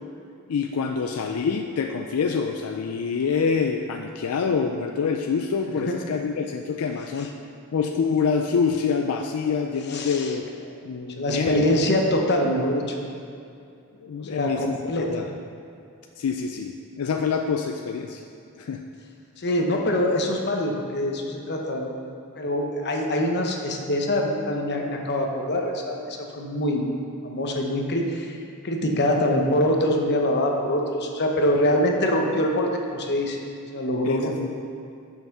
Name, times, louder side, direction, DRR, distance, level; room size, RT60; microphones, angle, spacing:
voice 1, 0.5-7.3 7.7-10.5 10.8-11.8 14.0-15.3 16.2-18.2 18.6-18.8 34.0-34.5, left 5 dB, 80° left, 4 dB, 0.4 m, -26 dB
voice 2, 9.9-10.3 11.2-12.8 14.2-15.2 19.4-22.1 22.3-26.9 27.2-28.4 28.6-33.4 33.7-34.3, left 1 dB, 50° left, 1 dB, 1.0 m, -24 dB
7.0 x 5.7 x 6.0 m, 2.5 s
head